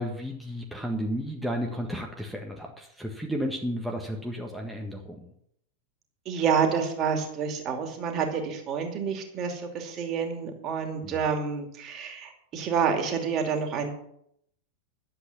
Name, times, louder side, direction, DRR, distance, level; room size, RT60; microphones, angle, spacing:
voice 1, 0.0-5.3 11.0-11.2, equal, ahead, 0 dB, 1.5 m, -33 dB
voice 2, 6.3-13.9, right 6 dB, 35° right, 4 dB, 2.6 m, -28 dB
11.5 x 8.0 x 7.1 m, 0.72 s
figure-of-eight pair, 90°, 0 cm